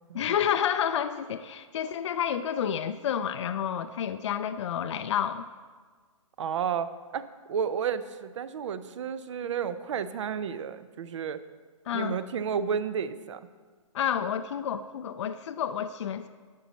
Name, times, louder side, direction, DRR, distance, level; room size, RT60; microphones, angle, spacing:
voice 1, 0.1-5.4 11.9-12.2 13.9-16.3, left 9 dB, 60° left, 10 dB, 0.5 m, -29 dB
voice 2, 6.4-11.4 11.9-13.4, right 7 dB, 60° right, 14 dB, 0.6 m, -32 dB
11.5 x 8.3 x 4.1 m, 1.5 s
hypercardioid pair, 140°, 17 cm